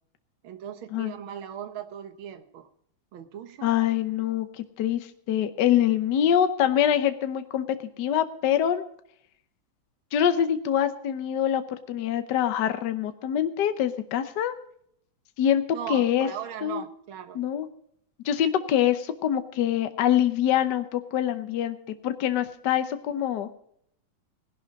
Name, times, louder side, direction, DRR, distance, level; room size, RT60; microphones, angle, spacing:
voice 1, 0.4-2.7 3.1-3.8 15.7-17.4, right 9 dB, 85° right, 10 dB, 1.9 m, -38 dB
voice 2, 3.6-7.7 8.0-8.8 10.1-11.6 11.9-14.5 15.4-15.6 15.9-16.3 16.6-16.8 17.3-17.7 18.2-21.8 22.0-23.5, left 10 dB, 65° left, 10 dB, 1.4 m, -24 dB
17.5 x 11.0 x 4.1 m, 0.68 s
omnidirectional pair, 2.2 m